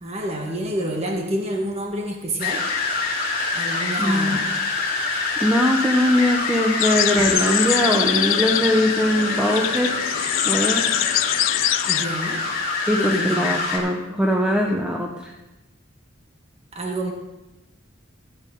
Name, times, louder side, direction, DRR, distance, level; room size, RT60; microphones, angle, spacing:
voice 1, 0.0-2.6 3.5-4.5 11.9-12.4 13.0-13.5 16.7-17.1, right 1 dB, 35° right, 1 dB, 1.6 m, -28 dB
sound 1, 2.4-13.8, left 3 dB, 50° left, 2.6 m, -26 dB
voice 2, 4.0-4.4 5.4-9.9 10.5-10.8 12.9-15.3, left 1 dB, 5° right, -1 dB, 0.9 m, -21 dB
sound 2, 6.8-12.1, left 16 dB, 80° left, 0.3 m, -24 dB
sound 3, 7.2-12.4, right 1 dB, 75° right, 1.6 m, -38 dB
15.0 x 8.8 x 3.8 m, 0.99 s
head